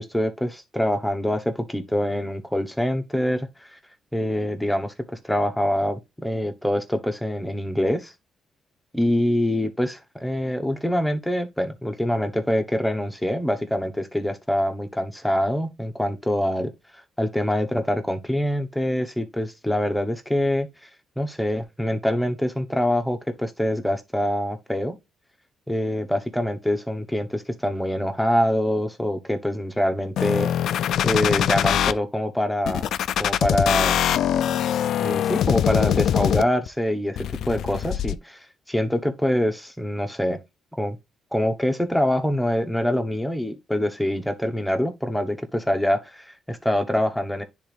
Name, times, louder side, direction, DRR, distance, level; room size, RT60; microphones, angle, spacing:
voice 1, 0.0-3.8 4.1-8.1 8.9-16.7 17.2-20.7 21.2-24.9 25.7-30.5 31.0-32.8 33.2-34.0 35.0-37.2 37.4-40.4 40.8-41.0 41.3-47.4, left 1 dB, 5° left, 1.1 m, -25 dB
sound 1, 30.2-31.9 32.7-36.7 37.2-38.1, left 10 dB, 70° left, 0.4 m, -23 dB
10.0 x 3.7 x 3.4 m
cardioid pair, 90°, 0 cm